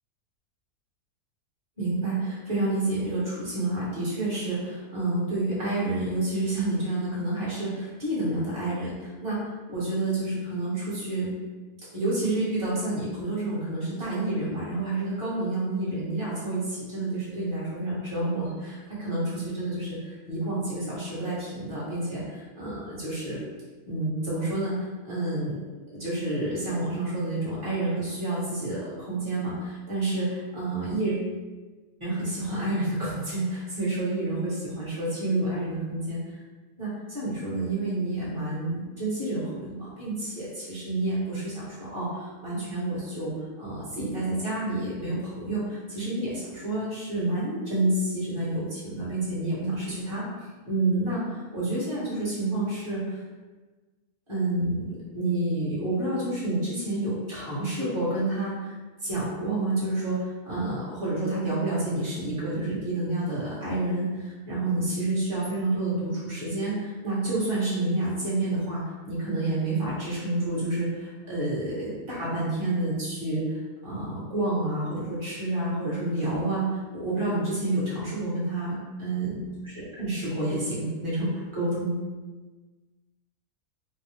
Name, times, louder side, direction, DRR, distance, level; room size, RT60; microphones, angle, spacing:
voice 1, 1.8-11.3 11.9-23.4 23.9-25.6 26.0-31.3 32.0-36.2 36.8-43.3 43.6-50.2 50.6-53.2 54.3-58.7 59.0-78.7 79.0-82.1, right 2 dB, 20° right, -9 dB, 1.5 m, -29 dB
3.9 x 2.4 x 3.4 m, 1.3 s
omnidirectional pair, 1.6 m